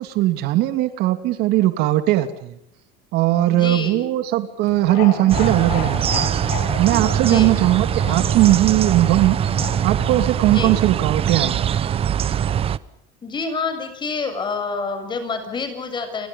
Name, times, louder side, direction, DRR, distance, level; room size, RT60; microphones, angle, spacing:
voice 1, 0.0-2.5 3.1-6.3 6.8-9.4 9.8-11.7, right 15 dB, 65° right, 10 dB, 2.7 m, -19 dB
voice 2, 3.5-4.1 7.2-7.5 10.5-10.8 13.2-16.3, left 4 dB, 25° left, 8 dB, 7.3 m, -27 dB
sound 1, 4.7-10.7, left 7 dB, 90° left, 7.4 m, -33 dB
sound 2, 5.3-12.8, right 9 dB, 30° right, 1.0 m, -22 dB
30.0 x 24.5 x 5.5 m, 0.75 s
cardioid pair, 140°, 18 cm